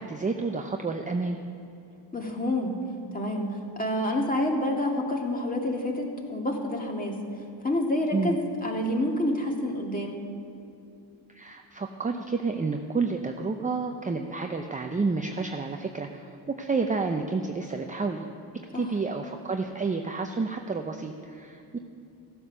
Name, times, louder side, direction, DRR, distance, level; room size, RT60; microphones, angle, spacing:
voice 1, 0.0-1.4 8.1-8.4 11.3-18.3 18.7-21.8, right 4 dB, 15° right, 4 dB, 0.6 m, -30 dB
voice 2, 2.1-2.7 3.1-3.4 3.8-7.1 7.6-10.2 18.7-18.9, left 1 dB, 20° left, 0 dB, 2.1 m, -28 dB
14.5 x 7.8 x 6.2 m, 2.7 s
cardioid pair, 90°, 47 cm